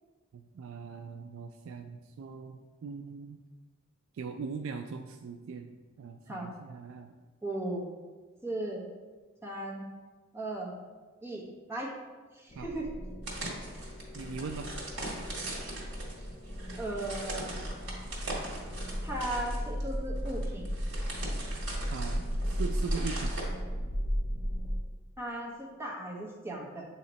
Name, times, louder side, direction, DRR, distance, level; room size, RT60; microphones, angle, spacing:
voice 1, 0.3-3.4 4.1-7.1 12.6-12.7 14.1-14.7 21.9-23.3, right 5 dB, 85° right, 6 dB, 0.3 m, -40 dB
voice 2, 7.4-7.8 8.4-8.8 9.4-9.8 10.3-10.7 11.2-11.9 12.4-12.9 16.8-17.6 19.0-20.7 25.2-26.8, right 1 dB, 15° right, -3 dB, 1.1 m, -36 dB
sound 1, 12.5-24.8, equal, 40° left, 0.6 m, -35 dB
sound 2, 13.2-23.5, right 2 dB, 70° right, 1.7 m, -41 dB
8.1 x 2.9 x 4.0 m, 1.3 s
head